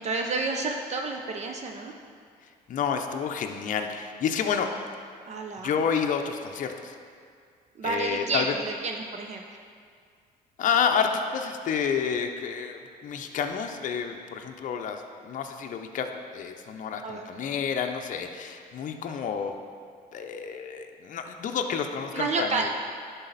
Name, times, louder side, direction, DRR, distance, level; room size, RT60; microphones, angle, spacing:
voice 1, 0.0-1.9 5.3-5.7 7.8-9.6 17.0-17.3 22.1-22.7, right 3 dB, 40° right, 2 dB, 0.6 m, -30 dB
voice 2, 2.7-4.7 5.6-6.9 7.8-8.5 10.6-16.1 16.3-19.5 20.1-22.6, left 7 dB, 50° left, 5 dB, 0.6 m, -29 dB
11.0 x 4.0 x 4.0 m, 2.2 s
cardioid pair, 110°, 17 cm